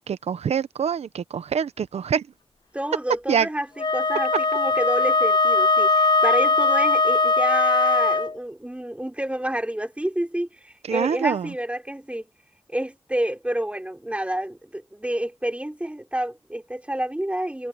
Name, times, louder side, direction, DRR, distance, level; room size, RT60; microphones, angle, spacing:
voice 1, 0.0-2.3 3.3-3.5 10.9-11.5, right 7 dB, 85° right, 0.9 m, -25 dB
voice 2, 2.7-12.3 12.7-17.7, right 1 dB, 10° right, 5.4 m, -29 dB
Wind instrument woodwind instrument, 3.8-8.3, left 3 dB, 45° left, 0.8 m, -20 dB
cardioid pair, 55°, 11 cm